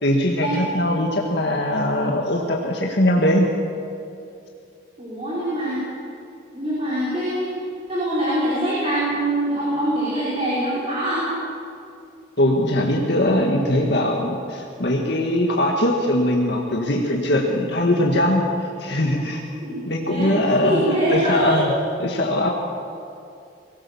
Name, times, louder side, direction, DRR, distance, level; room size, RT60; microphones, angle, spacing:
voice 1, 0.0-3.5 12.4-18.4 18.8-19.4 19.9-20.8 21.1-21.7 22.0-22.5, left 1 dB, 60° left, -1 dB, 1.9 m, -21 dB
voice 2, 5.0-5.8 6.5-7.5 7.9-11.3 19.5-21.7, right 1 dB, 30° right, -9 dB, 5.8 m, -24 dB
23.5 x 17.5 x 7.2 m, 2.6 s
head